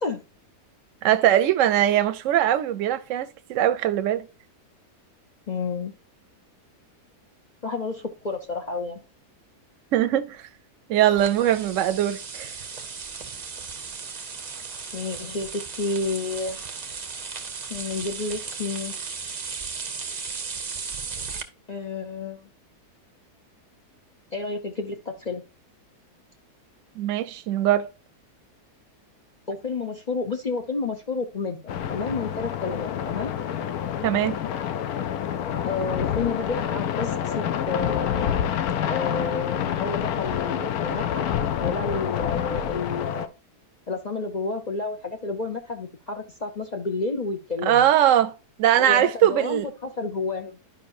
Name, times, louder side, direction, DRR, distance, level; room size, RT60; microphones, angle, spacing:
voice 1, 1.0-4.3 9.9-10.5 10.9-12.5 27.0-27.9 34.0-34.4 47.6-48.3 48.6-49.7, right 11 dB, 65° right, 0.9 m, -21 dB
voice 2, 5.5-5.9 7.6-9.0 14.9-16.6 17.7-19.0 21.7-22.5 24.3-25.4 29.5-31.6 31.9-33.3 35.7-38.3 38.9-41.2 41.6-43.3 43.9-47.8 48.8-50.6, left 3 dB, 50° left, 0.5 m, -30 dB
sound 1, 11.2-21.4, right 5 dB, 40° right, 0.6 m, -36 dB
sound 2, 31.7-43.3, left 9 dB, 75° left, 1.1 m, -27 dB
11.5 x 5.4 x 2.6 m
omnidirectional pair, 1.7 m